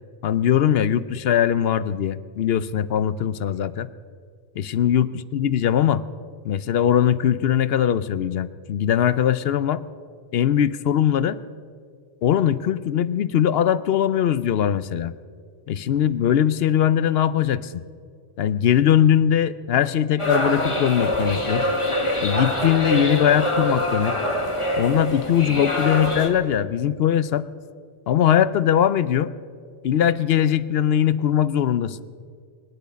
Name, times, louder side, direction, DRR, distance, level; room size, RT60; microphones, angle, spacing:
voice 1, 0.2-3.9 4.6-6.0 6.4-9.8 10.3-11.4 12.2-15.1 15.7-17.7 18.4-21.6 22.2-24.2 24.8-27.5 28.1-29.3 29.8-32.0, left 10 dB, 70° left, 16 dB, 0.8 m, -21 dB
sound 1, 20.2-26.3, left 1 dB, 30° left, 1.7 m, -24 dB
24.5 x 11.0 x 5.2 m, 2.2 s
omnidirectional pair, 1.1 m